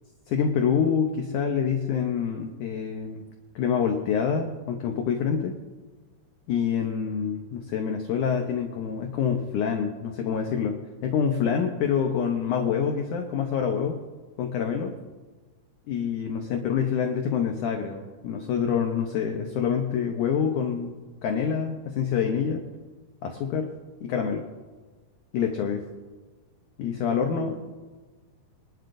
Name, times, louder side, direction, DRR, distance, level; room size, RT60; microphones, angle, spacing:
voice 1, 0.3-3.2 3.6-5.6 6.5-14.0 14.4-14.9 15.9-20.9 21.2-22.6 23.2-23.7 24.0-24.5 25.3-25.9 26.8-27.7, left 7 dB, 70° left, 3 dB, 2.0 m, -26 dB
24.0 x 12.0 x 2.6 m, 1.3 s
omnidirectional pair, 4.5 m